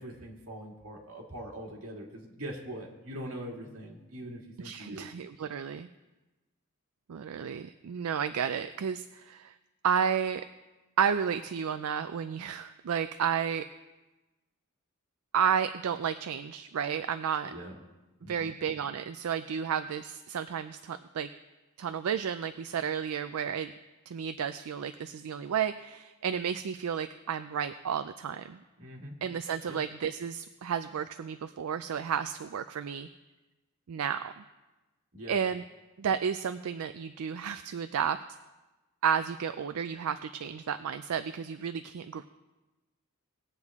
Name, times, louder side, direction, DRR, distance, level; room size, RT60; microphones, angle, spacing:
voice 1, 0.0-5.1 17.5-17.8 18.2-18.5 28.8-29.1 29.7-29.8 35.1-35.4, right 1 dB, 70° right, -1 dB, 2.2 m, -42 dB
voice 2, 4.6-5.9 7.1-9.5 9.8-10.4 11.0-13.7 15.3-17.5 18.3-21.3 21.8-23.7 24.1-28.6 29.2-33.1 33.9-34.4 35.3-35.6 36.0-38.2 39.0-42.3, right 7 dB, 85° right, 10 dB, 0.4 m, -32 dB
19.5 x 8.2 x 3.6 m, 1.1 s
head